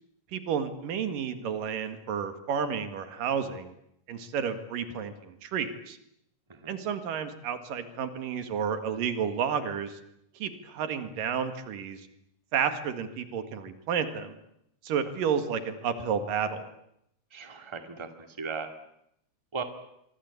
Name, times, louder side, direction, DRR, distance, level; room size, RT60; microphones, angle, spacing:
voice 1, 0.3-3.7 4.1-6.0 6.7-10.0 10.4-12.0 12.5-14.4 14.8-16.7, right 7 dB, 90° right, 9 dB, 3.5 m, -31 dB
voice 2, 17.3-18.7 19.5-19.6, right 5 dB, 10° right, 6 dB, 1.8 m, -37 dB
25.0 x 24.0 x 8.5 m, 0.78 s
omnidirectional pair, 3.8 m